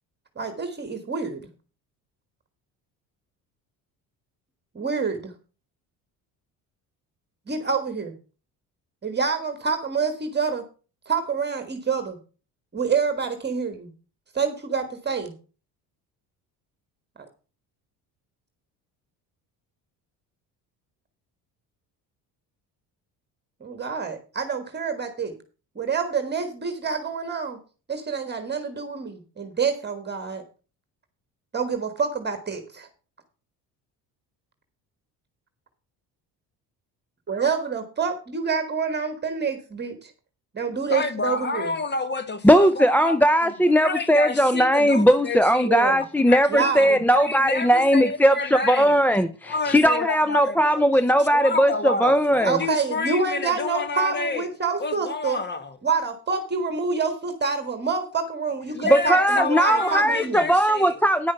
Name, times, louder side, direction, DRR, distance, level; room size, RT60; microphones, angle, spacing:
voice 1, 0.4-1.4 4.7-5.3 7.5-8.1 9.0-10.6 11.1-12.2 12.7-13.9 14.3-15.3 23.6-25.3 25.7-27.6 27.9-30.4 31.5-32.9 37.3-40.1 40.5-41.7 45.7-46.0 46.5-46.9 52.4-55.4 55.8-60.4, right 5 dB, 25° right, 1.6 m, -27 dB
voice 2, 40.9-43.5 43.8-45.7 46.2-49.0 49.5-50.8 51.2-54.5 54.8-55.8 58.7-61.0, left 3 dB, 30° left, 1.4 m, -29 dB
voice 3, 42.4-52.6 58.9-61.3, equal, 5° left, 0.4 m, -19 dB
9.9 x 6.2 x 5.8 m
cardioid pair, 95°, 38 cm